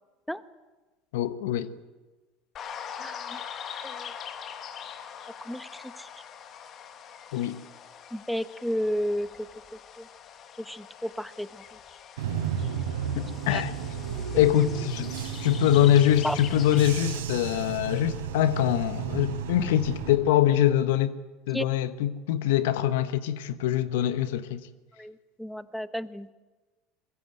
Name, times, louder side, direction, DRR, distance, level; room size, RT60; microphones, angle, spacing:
voice 1, 1.1-1.7 7.3-7.6 13.1-13.7 14.4-15.1 15.4-21.2 21.5-24.6, left 11 dB, 75° left, 1.3 m, -24 dB
sound 1, 2.6-17.2, left 8 dB, 45° left, 2.2 m, -43 dB
voice 2, 3.0-3.4 3.8-4.1 5.4-6.1 8.1-9.5 10.0-10.1 10.6-11.6 13.5-13.6 16.2-16.4 21.5-21.7 25.0-26.3, equal, ahead, 1.2 m, -32 dB
Bus / Engine, 12.2-20.2, right 7 dB, 85° right, 4.3 m, -33 dB
25.0 x 22.0 x 8.0 m
hypercardioid pair, 85°, 0 cm